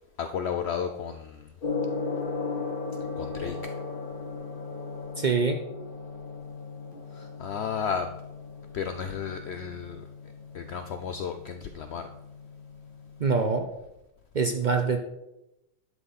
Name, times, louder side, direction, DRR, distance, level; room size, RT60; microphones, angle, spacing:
voice 1, 0.2-1.5 3.2-3.6 7.1-8.1 8.7-10.0 10.5-12.1, left 7 dB, 75° left, 7 dB, 0.6 m, -33 dB
Gong, 1.6-13.6, left 4 dB, 35° left, 1.5 m, -37 dB
voice 2, 5.2-5.6 13.2-13.7 14.3-15.0, right 4 dB, 70° right, 5 dB, 0.4 m, -24 dB
11.5 x 6.1 x 4.1 m, 0.90 s
omnidirectional pair, 1.7 m